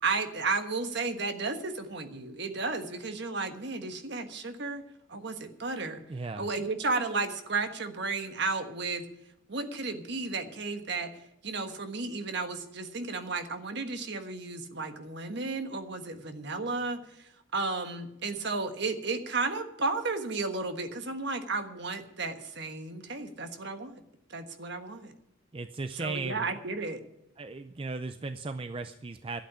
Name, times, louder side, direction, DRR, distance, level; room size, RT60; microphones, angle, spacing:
voice 1, 0.0-4.8 5.1-6.0 6.4-9.0 9.5-11.1 11.4-24.0 24.3-25.1 26.0-27.0, right 3 dB, 55° right, 7 dB, 1.4 m, -33 dB
voice 2, 6.1-6.5 25.5-26.6 27.4-29.4, right 3 dB, 25° right, 9 dB, 0.4 m, -36 dB
12.0 x 8.5 x 9.8 m, 0.84 s
head